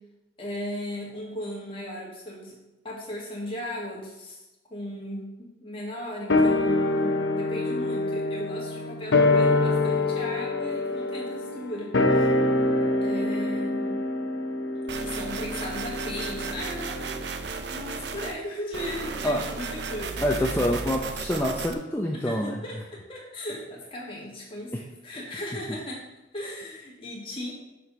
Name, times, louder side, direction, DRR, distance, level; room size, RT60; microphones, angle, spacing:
voice 1, 0.4-2.6 2.8-4.4 4.7-12.3 13.0-14.0 15.0-17.2 17.7-20.5 22.1-24.7 25.0-26.0 26.3-27.5, left 1 dB, 30° left, -4 dB, 1.8 m, -36 dB
sound 1, 6.3-16.9 17.2-17.3, left 2 dB, 75° left, 0.7 m, -25 dB
sound 2, 14.9-18.4 18.7-21.7, right 4 dB, 60° right, 0.6 m, -34 dB
voice 2, 20.2-22.6, equal, 10° left, -1 dB, 0.5 m, -26 dB
6.6 x 4.4 x 5.3 m, 0.98 s
head